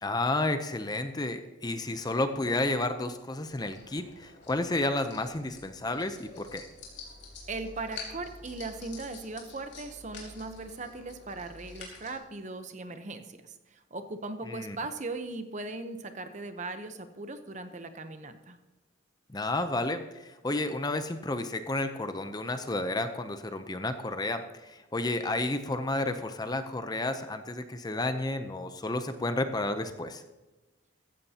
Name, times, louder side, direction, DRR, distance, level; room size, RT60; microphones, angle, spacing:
voice 1, 0.0-6.6 14.5-14.8 19.3-30.2, left 2 dB, 20° left, 9 dB, 0.6 m, -31 dB
sound 1, 3.4-12.2, left 3 dB, 65° left, 4.0 m, -48 dB
voice 2, 7.5-18.6, right 3 dB, 40° right, 9 dB, 0.8 m, -39 dB
15.0 x 14.5 x 2.9 m, 1.1 s
head